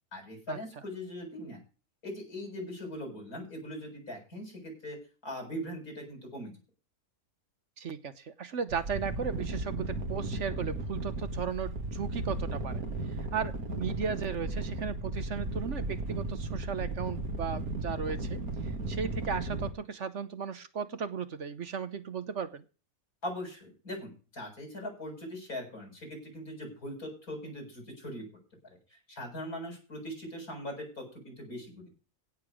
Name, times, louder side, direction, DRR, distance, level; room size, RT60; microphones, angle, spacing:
voice 1, 0.1-1.6 2.0-5.0 5.2-6.5 23.2-28.3 29.1-31.8, equal, 80° left, 2 dB, 8.1 m, -40 dB
voice 2, 7.8-12.8 13.3-22.6, right 6 dB, 55° right, 12 dB, 1.3 m, -36 dB
sound 1, 8.7-19.7, right 2 dB, 80° right, 2.5 m, -35 dB
16.5 x 6.8 x 5.1 m, 0.34 s
omnidirectional pair, 1.5 m